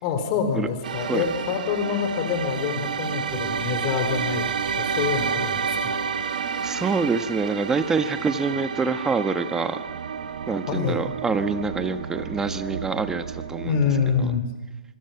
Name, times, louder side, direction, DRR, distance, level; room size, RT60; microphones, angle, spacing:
voice 1, 0.0-4.5 4.7-6.0 10.7-11.0 13.6-14.5, left 7 dB, 40° left, 7 dB, 4.3 m, -26 dB
sound 1, 0.8-14.4, right 6 dB, 70° right, 1.6 m, -30 dB
voice 2, 6.6-9.8 10.5-13.8, right 4 dB, 10° right, 9 dB, 1.3 m, -26 dB
25.5 x 23.0 x 6.0 m, 1.2 s
hypercardioid pair, 120°, 5 cm